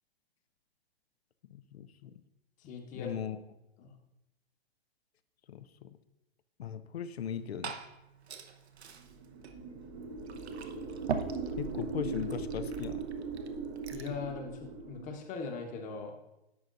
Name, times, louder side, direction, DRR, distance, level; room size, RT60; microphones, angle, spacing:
voice 1, 1.5-2.2 2.9-3.4 5.5-5.9 6.6-7.7 11.6-13.0, left 8 dB, 75° left, 13 dB, 0.7 m, -38 dB
voice 2, 2.6-3.2 3.8-3.9 11.3-11.6 13.9-16.1, left 5 dB, 25° left, 4 dB, 1.1 m, -41 dB
Liquid, 7.1-14.2, right 6 dB, 80° right, 0.8 m, -43 dB
sound 1, 9.1-15.2, right 4 dB, 30° right, 0.6 m, -39 dB
11.0 x 6.8 x 2.6 m, 0.91 s
hypercardioid pair, 125°, 32 cm